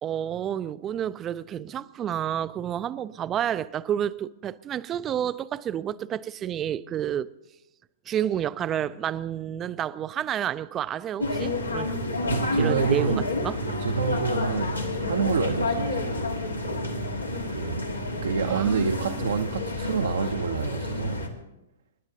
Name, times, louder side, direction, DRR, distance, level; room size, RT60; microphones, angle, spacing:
voice 1, 0.0-7.3 8.1-12.0 12.6-13.6 18.4-19.2, right 10 dB, 25° right, 0.4 m, -30 dB
sound 1, 11.2-21.3, left 2 dB, 85° left, 1.7 m, -29 dB
voice 2, 12.3-13.2 13.8-16.2 17.5-17.9 18.2-21.2, right 5 dB, 65° right, 0.7 m, -28 dB
29.0 x 10.5 x 2.8 m
figure-of-eight pair, 110°, 0 cm